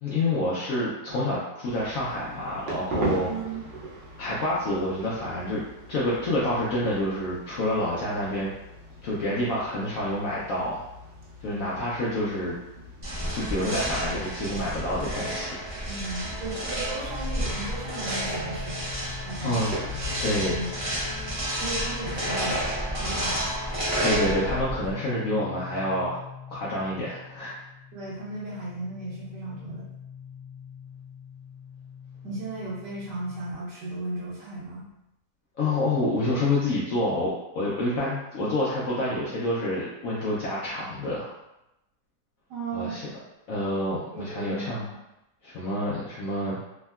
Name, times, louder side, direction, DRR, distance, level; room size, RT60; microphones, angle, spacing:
voice 1, 0.0-3.3 4.2-8.5 9.0-10.9 11.4-12.6 13.3-15.6 19.4-19.7 20.2-20.6 24.0-26.2 26.5-27.5 35.6-41.3 42.7-43.1 43.5-44.8 45.4-46.6, left 1 dB, 70° left, -6 dB, 0.8 m, -28 dB
sound 1, 1.6-21.4, right 1 dB, 90° right, 1.4 m, -41 dB
voice 2, 3.3-3.6 15.9-18.8 19.2-19.8 20.5-20.7 21.6-22.7 23.0-23.4 27.9-29.9 32.2-34.9 42.5-43.0 44.1-44.8, right 2 dB, 70° right, -8 dB, 1.5 m, -35 dB
sound 2, 13.0-24.9, equal, 40° right, 0.5 m, -30 dB
sound 3, 17.0-33.5, left 7 dB, 40° left, 0.9 m, -44 dB
3.5 x 2.1 x 2.2 m, 0.89 s
omnidirectional pair, 1.9 m